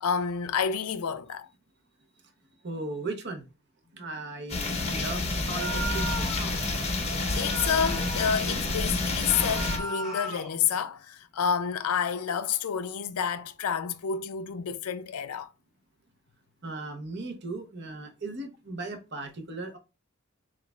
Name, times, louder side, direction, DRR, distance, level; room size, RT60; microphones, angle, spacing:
voice 1, 0.0-1.5 7.3-15.5, left 7 dB, 80° left, 0.4 m, -29 dB
voice 2, 2.6-3.5 3.9-6.4 16.6-19.8, right 2 dB, 50° right, 0.8 m, -37 dB
sound 1, 4.5-9.8, left 2 dB, 30° left, 0.7 m, -29 dB
sound 2, 5.5-6.6 7.4-8.5 9.2-10.6, equal, ahead, 1.5 m, -36 dB
6.2 x 2.4 x 2.3 m
head